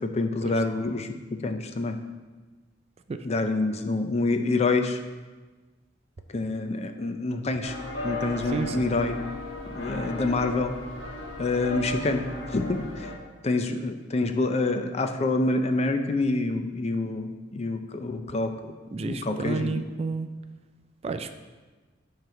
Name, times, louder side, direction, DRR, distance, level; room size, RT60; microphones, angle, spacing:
voice 1, 0.0-2.0 3.2-5.0 6.3-7.8 8.0-9.2 9.7-10.7 11.4-13.1 13.4-19.7, left 2 dB, 35° left, 7 dB, 0.5 m, -27 dB
sound 1, 7.6-13.1, left 1 dB, 85° left, 1.3 m, -36 dB
voice 2, 8.5-8.8 18.9-20.3 21.0-21.4, right 4 dB, 35° right, 9 dB, 0.3 m, -31 dB
8.9 x 3.2 x 5.7 m, 1.3 s
head